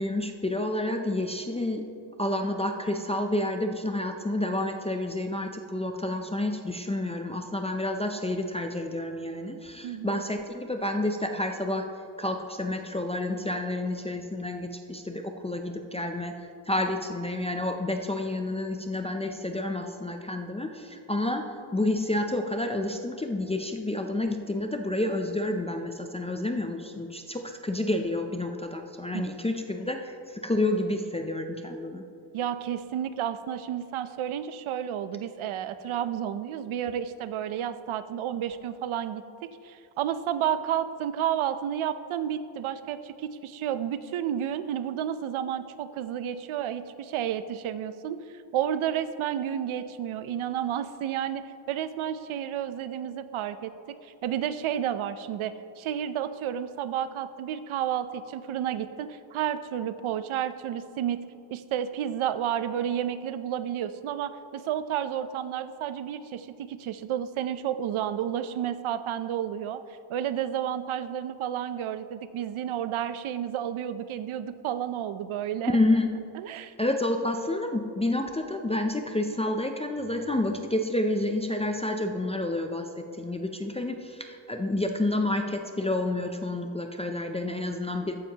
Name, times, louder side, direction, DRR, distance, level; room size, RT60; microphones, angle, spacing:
voice 1, 0.0-1.9 2.2-11.9 12.2-16.4 16.7-32.0 75.7-76.1 76.8-88.1, left 1 dB, 15° left, 4 dB, 0.3 m, -29 dB
voice 2, 9.8-10.2 29.1-29.3 32.3-48.2 48.5-61.2 61.5-69.8 70.1-75.8 76.3-76.7, right 10 dB, 75° right, 12 dB, 0.6 m, -31 dB
14.0 x 9.8 x 2.8 m, 2.6 s
wide cardioid pair, 150°, 49 cm